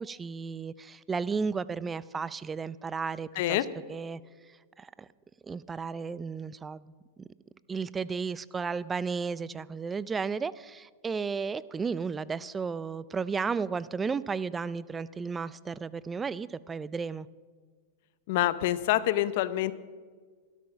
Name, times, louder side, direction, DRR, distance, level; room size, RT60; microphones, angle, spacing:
voice 1, 0.0-4.2 4.5-5.1 5.4-6.9 7.7-17.3, right 5 dB, 15° right, 19 dB, 0.4 m, -34 dB
voice 2, 18.3-19.7, left 14 dB, 60° left, 16 dB, 0.8 m, -26 dB
13.0 x 12.5 x 5.7 m, 1.5 s
hypercardioid pair, 125°, 0 cm